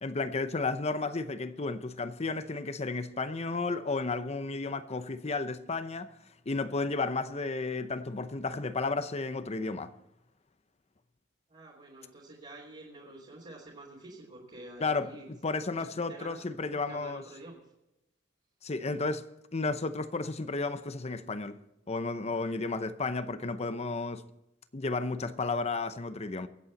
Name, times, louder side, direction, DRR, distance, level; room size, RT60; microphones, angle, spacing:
voice 1, 0.0-6.1 6.5-9.9 14.8-15.1 15.4-17.2 18.6-19.3 19.5-21.6 21.9-24.2 24.7-26.5, left 3 dB, 35° left, 0.7 m, -33 dB
voice 2, 11.5-15.3 15.6-16.4 16.7-17.6, right 2 dB, 40° right, 3.2 m, -48 dB
23.5 x 8.6 x 4.1 m
head